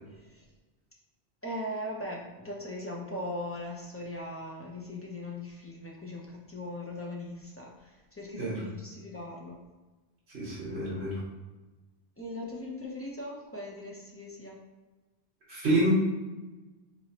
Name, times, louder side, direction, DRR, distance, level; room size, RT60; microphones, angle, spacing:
voice 1, 0.1-0.4 1.4-9.6 12.2-14.6, left 1 dB, 20° left, -3 dB, 0.4 m, -39 dB
voice 2, 10.3-11.2 15.5-15.9, right 1 dB, 75° right, -8 dB, 1.4 m, -28 dB
4.0 x 3.1 x 2.9 m, 1.2 s
omnidirectional pair, 1.1 m